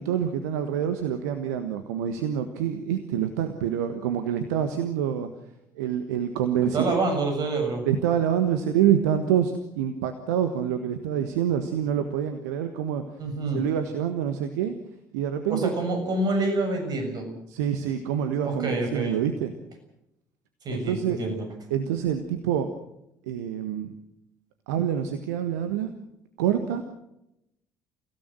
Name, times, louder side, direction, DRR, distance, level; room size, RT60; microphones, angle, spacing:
voice 1, 0.0-5.3 5.7-7.0 7.8-13.0 13.5-14.8 15.1-15.7 17.5-19.5 20.7-21.2 21.7-22.7 23.3-23.9 24.7-25.9 26.4-26.9, right 9 dB, 65° right, 8 dB, 1.4 m, -26 dB
voice 2, 6.7-7.8 13.2-13.6 15.5-17.3 18.4-19.2 20.7-21.4, right 2 dB, 45° right, 4 dB, 7.1 m, -27 dB
29.5 x 16.5 x 6.2 m, 0.84 s
figure-of-eight pair, 55°, 9 cm